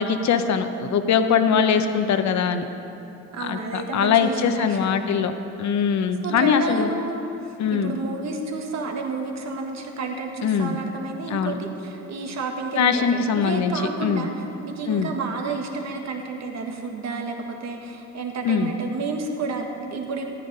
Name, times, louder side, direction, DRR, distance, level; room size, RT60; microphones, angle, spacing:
voice 1, 0.0-2.6 3.4-5.3 5.6-6.9 7.6-7.9 10.4-10.8 11.3-11.5 12.8-13.7 14.0-14.3 14.9-15.1 18.4-18.7, left 7 dB, 65° left, 8 dB, 0.9 m, -22 dB
voice 2, 1.5-1.8 3.3-5.3 6.2-14.3 14.6-20.2, right 3 dB, 60° right, 2 dB, 1.6 m, -31 dB
13.5 x 10.0 x 5.4 m, 2.8 s
cardioid pair, 90°, 30 cm